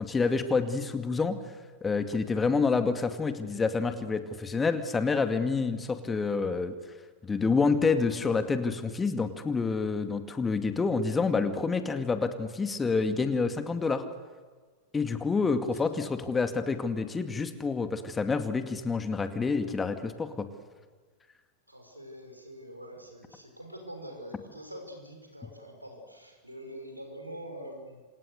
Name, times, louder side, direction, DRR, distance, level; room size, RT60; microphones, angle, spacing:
voice 1, 0.0-1.4 1.8-6.7 7.2-14.0 14.9-20.5, left 4 dB, 15° left, 8 dB, 2.2 m, -28 dB
voice 2, 21.7-28.0, equal, 90° right, 3 dB, 6.3 m, -44 dB
28.0 x 27.0 x 6.8 m, 1.5 s
figure-of-eight pair, 90°, 0 cm